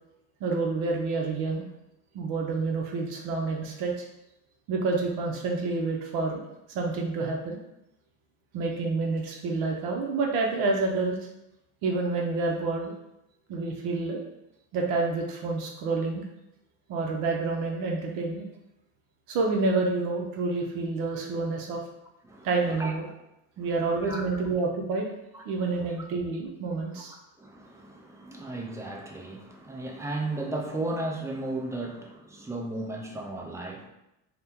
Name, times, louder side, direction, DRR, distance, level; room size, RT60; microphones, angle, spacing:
voice 1, 0.4-1.6 2.1-3.9 4.7-6.4 6.7-7.6 8.5-11.2 11.8-12.9 13.5-14.2 14.7-16.2 16.9-18.5 19.3-21.8 22.4-23.1 23.6-25.1 25.5-27.1, right 3 dB, 65° right, 0 dB, 0.6 m, -28 dB
voice 2, 27.1-33.9, right 2 dB, 10° right, 1 dB, 0.3 m, -35 dB
2.8 x 2.1 x 3.5 m, 0.87 s
supercardioid pair, 105°, 39 cm